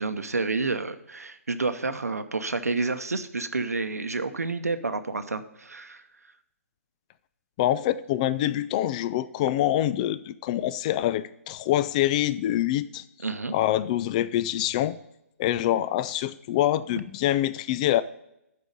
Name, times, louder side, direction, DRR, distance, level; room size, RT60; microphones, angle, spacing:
voice 1, 0.0-6.0 13.2-13.5, right 3 dB, 85° right, 10 dB, 0.8 m, -29 dB
voice 2, 7.6-13.0 13.5-15.0 15.4-18.0, left 13 dB, 30° left, 15 dB, 0.3 m, -25 dB
10.5 x 4.7 x 5.2 m, 0.84 s
figure-of-eight pair, 140°, 8 cm